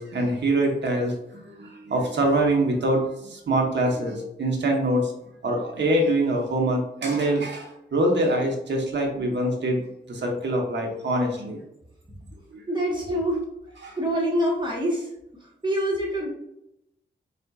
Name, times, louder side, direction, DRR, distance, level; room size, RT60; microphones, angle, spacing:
voice 1, 0.0-5.1 5.4-9.8 10.1-11.6 12.5-12.6 13.1-13.2 13.8-14.0, right 1 dB, 75° right, 1 dB, 1.2 m, -24 dB
voice 2, 12.7-13.4 14.0-15.1 15.4-16.3, equal, 25° right, -3 dB, 1.3 m, -25 dB
4.3 x 4.1 x 2.4 m, 0.82 s
cardioid pair, 75°, 18 cm